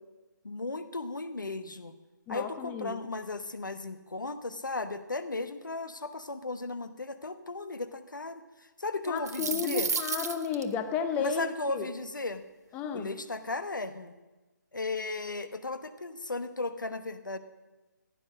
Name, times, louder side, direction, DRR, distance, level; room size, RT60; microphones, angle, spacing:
voice 1, 0.4-2.0 2.3-9.9 11.2-12.4 12.9-14.1 14.7-17.4, left 3 dB, 75° left, 11 dB, 1.1 m, -36 dB
voice 2, 2.3-3.0 9.1-11.9 12.7-13.1, left 6 dB, 15° left, 10 dB, 0.7 m, -32 dB
sound 1, 9.0-10.6, right 5 dB, 55° right, 1.0 m, -32 dB
15.0 x 10.5 x 6.4 m, 1.2 s
figure-of-eight pair, 145°, 10 cm